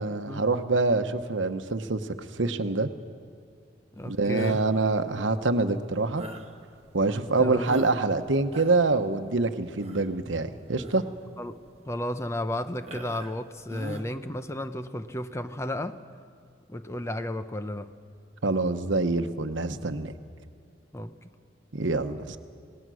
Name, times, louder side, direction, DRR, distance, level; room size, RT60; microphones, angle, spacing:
voice 1, 0.0-2.9 4.1-6.2 6.9-11.0 18.4-20.1 21.7-22.4, right 3 dB, 80° right, 1.0 m, -26 dB
voice 2, 3.9-4.7 7.4-7.9 11.4-11.6 11.9-16.0 16.7-17.9 20.9-21.3, left 1 dB, 15° left, 0.7 m, -33 dB
sound 1, 4.3-4.8 6.1-6.6 7.1-7.2 7.6-8.1 8.4-8.9 9.8-10.2 10.7-11.1 11.7-11.8 12.8-13.4 13.7-14.1, right 1 dB, 35° right, 1.5 m, -41 dB
27.0 x 18.5 x 6.3 m
head